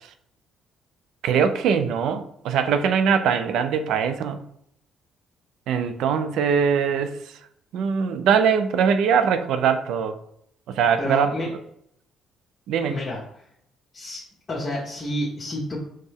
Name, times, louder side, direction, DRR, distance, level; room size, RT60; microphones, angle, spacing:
voice 1, 1.2-4.4 5.7-7.3 7.7-10.2 10.7-11.3 12.7-13.0, right 7 dB, 75° right, 9 dB, 0.4 m, -22 dB
voice 2, 11.0-11.5 12.9-13.2 13.9-14.2 14.5-15.8, left 1 dB, 30° left, -5 dB, 1.2 m, -29 dB
4.3 x 3.1 x 3.5 m, 0.72 s
cardioid pair, 90°, 0 cm